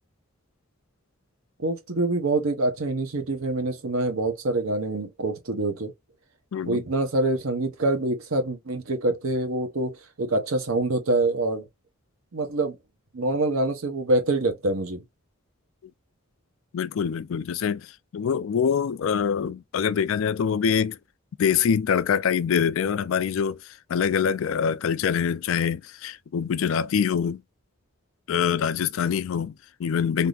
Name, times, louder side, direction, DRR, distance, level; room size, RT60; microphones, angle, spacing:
voice 1, 1.6-5.9 6.7-11.7 12.3-12.8 13.1-15.0, right 2 dB, 75° right, 0.8 m, -25 dB
voice 2, 6.5-6.8 16.7-21.0 21.4-27.4 28.3-30.3, left 7 dB, 65° left, 0.3 m, -25 dB
3.5 x 2.6 x 2.4 m
head